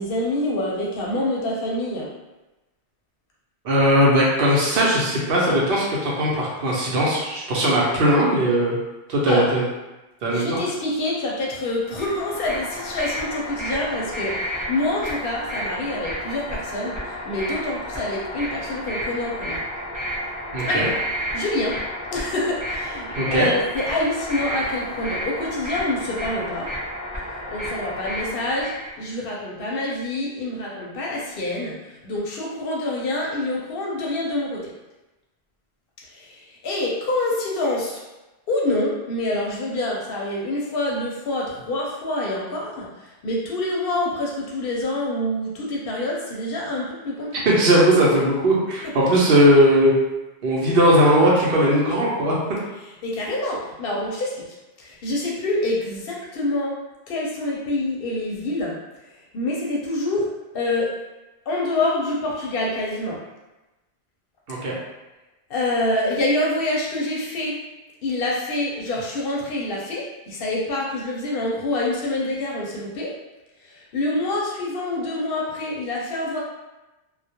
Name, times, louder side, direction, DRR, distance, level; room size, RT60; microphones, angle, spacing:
voice 1, 0.0-2.1 9.3-9.5 10.2-14.4 14.7-19.6 20.6-20.9 21.3-21.8 22.1-26.7 27.5-34.7 36.1-38.0 38.5-47.4 53.0-54.4 54.8-56.8 57.1-58.7 59.3-60.3 60.5-60.9 61.5-63.2 65.5-67.6 68.0-73.1 73.7-76.4, left 2 dB, 65° left, -3 dB, 0.7 m, -26 dB
voice 2, 3.6-8.8 9.1-9.6 10.2-10.6 20.5-20.9 23.1-23.5 47.4-50.0 50.4-52.3 64.5-64.8, equal, 65° right, -4 dB, 0.8 m, -18 dB
sound 1, 11.8-28.9, equal, 10° right, 0.6 m, -31 dB
2.3 x 2.1 x 2.7 m, 1.0 s
omnidirectional pair, 1.1 m